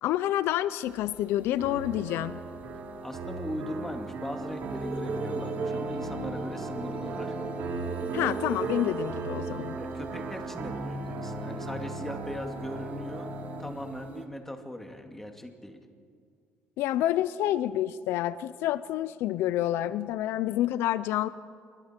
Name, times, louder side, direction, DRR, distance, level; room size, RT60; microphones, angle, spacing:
voice 1, 0.0-2.4 8.1-9.8 16.8-21.3, left 13 dB, 80° left, 15 dB, 0.5 m, -28 dB
sound 1, 0.9-14.3, right 5 dB, 40° right, 1.7 m, -39 dB
sound 2, 1.6-13.6, right 2 dB, 70° right, 3.4 m, -37 dB
voice 2, 3.0-7.4 9.8-13.3 13.6-15.8, left 1 dB, 10° left, 4 dB, 2.1 m, -39 dB
27.0 x 22.0 x 4.5 m, 2.2 s
cardioid pair, 120°, 4 cm